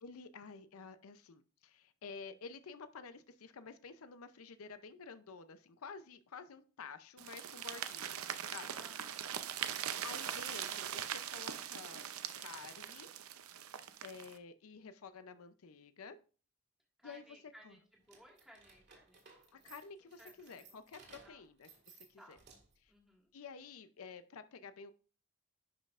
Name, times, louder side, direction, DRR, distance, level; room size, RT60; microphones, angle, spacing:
voice 1, 0.0-8.7 10.0-13.1 14.0-16.2 17.0-17.2 17.6-17.8 19.5-22.4 22.8-22.9 23.3-24.9, left 5 dB, 80° left, 11 dB, 0.5 m, -51 dB
sound 1, 7.2-14.4, right 9 dB, 80° right, 0.6 m, -41 dB
voice 2, 7.7-8.1 8.7-10.1 17.0-20.8 21.2-21.4 22.2-22.4 22.9-23.3, equal, ahead, -2 dB, 1.7 m, -62 dB
sound 2, 18.0-22.9, right 4 dB, 50° right, 1.9 m, -61 dB
11.0 x 5.3 x 2.4 m, 0.38 s
head